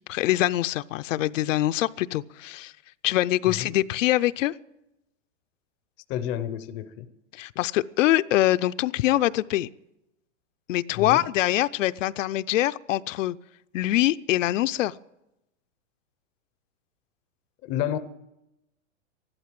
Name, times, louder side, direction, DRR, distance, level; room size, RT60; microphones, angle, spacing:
voice 1, 0.0-2.7 3.0-4.5 7.3-9.7 10.7-13.4 13.7-14.9, left 15 dB, 80° left, 13 dB, 0.6 m, -24 dB
voice 2, 6.1-7.1 10.9-11.3 17.6-18.0, left 11 dB, 20° left, 11 dB, 0.5 m, -30 dB
14.0 x 12.0 x 7.5 m, 0.90 s
supercardioid pair, 170°, 38 cm